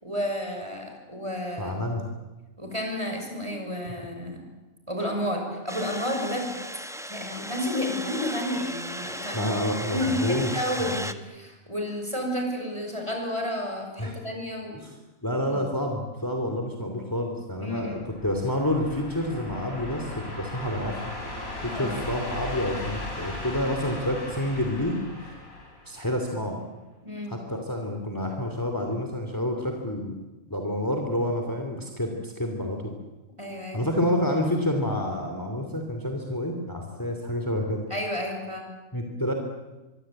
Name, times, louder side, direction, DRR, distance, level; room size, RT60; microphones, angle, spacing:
voice 1, 0.0-1.8 2.6-4.4 4.9-6.6 7.1-9.5 9.9-14.8 15.5-15.6 17.6-18.0 21.7-22.0 27.0-27.4 33.4-33.8 37.9-38.7, left 1 dB, 20° right, 2 dB, 6.2 m, -31 dB
voice 2, 1.6-2.0 9.3-10.5 10.8-11.1 14.0-14.2 14.7-14.9 15.2-21.1 21.6-24.9 25.2-25.3 25.8-26.6 27.3-30.2 30.5-32.9 33.7-37.8 38.9-39.3, left 1 dB, 15° left, 3 dB, 2.8 m, -28 dB
sound 1, 5.7-11.1, equal, ahead, 1.1 m, -36 dB
sound 2, 17.8-26.3, left 1 dB, 90° left, 5.6 m, -37 dB
24.0 x 24.0 x 8.8 m, 1.1 s
omnidirectional pair, 1.4 m